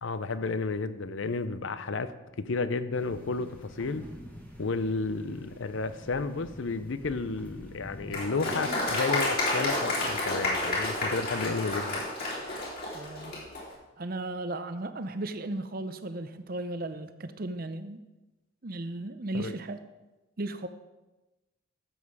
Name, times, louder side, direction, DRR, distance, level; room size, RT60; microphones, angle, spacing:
voice 1, 0.0-2.1 2.4-4.0 4.6-12.0 19.3-19.5, left 3 dB, 65° left, 13 dB, 0.6 m, -32 dB
sound 1, 2.9-8.2, equal, 10° left, 1.4 m, -47 dB
Applause, 8.1-13.6, left 2 dB, 45° left, 3.4 m, -30 dB
voice 2, 12.9-13.3 14.0-18.0 18.6-19.8 20.4-20.7, right 2 dB, 45° right, 10 dB, 0.7 m, -35 dB
12.5 x 7.5 x 4.9 m, 1.1 s
head